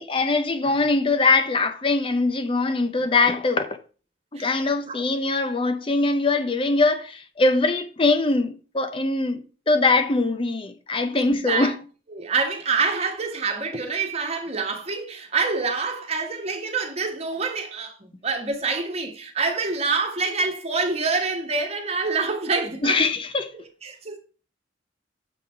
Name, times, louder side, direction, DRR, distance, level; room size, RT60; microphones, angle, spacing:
voice 1, 0.0-3.8 4.3-11.8 22.8-23.5, left 3 dB, 30° left, 0.6 m, -22 dB
voice 2, 4.4-5.0 11.1-11.7 12.1-23.0 23.5-24.2, right 4 dB, 35° right, 1.3 m, -26 dB
7.3 x 4.1 x 5.4 m
head